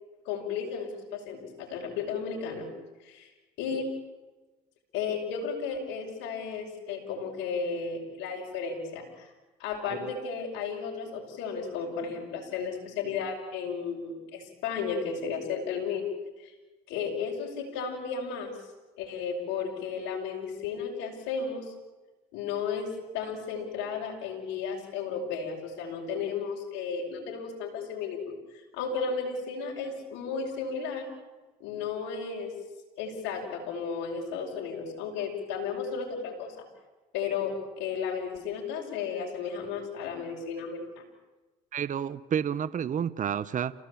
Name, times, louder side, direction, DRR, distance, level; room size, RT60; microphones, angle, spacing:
voice 1, 0.3-2.7 3.0-3.3 3.6-3.9 4.9-9.3 9.6-16.1 16.4-16.5 16.9-18.5 19.0-21.7 22.3-31.1 31.6-32.5 33.0-36.6 37.1-41.0, left 5 dB, 80° left, -1 dB, 6.0 m, -34 dB
voice 2, 41.7-43.7, right 8 dB, 45° right, 16 dB, 1.0 m, -30 dB
29.0 x 18.0 x 8.7 m, 1.2 s
supercardioid pair, 75°, 19 cm